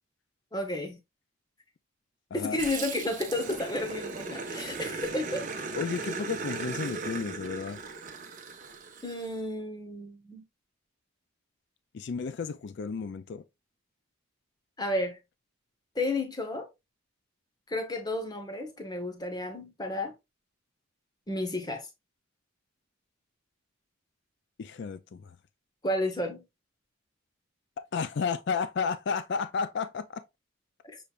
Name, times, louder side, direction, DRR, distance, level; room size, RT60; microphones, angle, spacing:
voice 1, 0.5-1.0 2.3-5.4 9.0-10.4 14.8-15.2 15.9-16.7 17.7-20.1 21.3-21.9 25.8-26.4 30.9-31.0, left 1 dB, 20° left, 0.9 m, -32 dB
Growling, 2.6-9.3, right 4 dB, 35° right, 0.9 m, -37 dB
voice 2, 5.7-7.8 11.9-13.4 24.6-25.3 27.9-30.2, left 5 dB, 55° left, 0.4 m, -32 dB
6.7 x 3.3 x 2.4 m
head